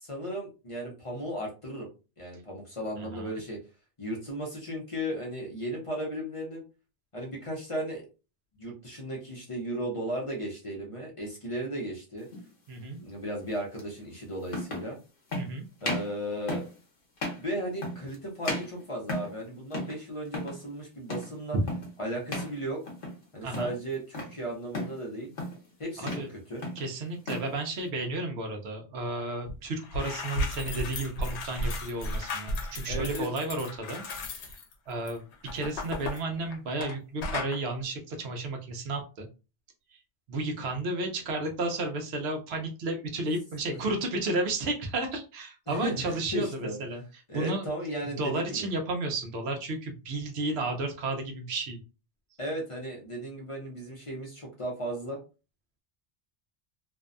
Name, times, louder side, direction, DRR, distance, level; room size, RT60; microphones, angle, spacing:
voice 1, 0.0-1.9 2.2-3.6 4.0-6.6 7.1-8.0 8.6-12.3 13.0-15.0 15.8-16.7 17.4-21.6 22.0-22.8 23.3-25.3 25.8-26.6 32.9-33.3 43.7-43.8 45.7-46.8 47.3-48.7 52.4-55.2, right 1 dB, 35° left, -1 dB, 0.7 m, -35 dB
voice 2, 3.0-3.3 12.7-13.0 15.3-15.6 21.5-21.6 23.4-23.8 26.0-26.3 26.8-34.0 34.3-34.5 34.9-35.2 35.5-39.3 40.3-47.0 47.3-47.7 48.0-51.8, right 2 dB, 75° right, 4 dB, 0.9 m, -32 dB
sound 1, 12.3-12.5 13.8-13.9 14.5-14.9 15.3-15.5 15.8-16.1 16.5-16.8 17.2-17.5 17.8-18.2 18.4-19.4 19.7-20.0 20.3-20.6 21.1-21.4 21.7-21.9 22.3-22.6 22.9-23.2 23.5-24.3 24.7-25.0 25.4-25.7 26.0-26.3 26.6-27.5, left 1 dB, 55° left, 0.9 m, -35 dB
sound 2, 29.5-29.6 29.8-36.9 37.2-37.6, left 1 dB, 85° left, 0.9 m, -34 dB
2.6 x 2.2 x 2.4 m, 0.31 s
omnidirectional pair, 1.1 m